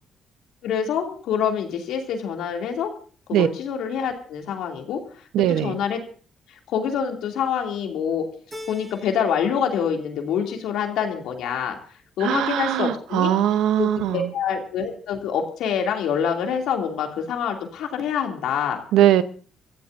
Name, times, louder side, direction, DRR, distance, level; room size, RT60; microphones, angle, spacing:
voice 1, 0.6-2.9 3.3-5.0 5.6-6.0 6.5-8.3 8.7-11.8 12.2-13.3 13.8-18.8, left 7 dB, 85° left, 2.7 m, -26 dB
voice 2, 5.3-5.8 12.2-14.3 18.9-19.2, right 11 dB, 90° right, 0.9 m, -20 dB
Keyboard (musical), 8.5-9.6 9.9-10.7, left 1 dB, 20° right, 5.1 m, -42 dB
26.0 x 14.5 x 2.7 m
cardioid pair, 90°, 0 cm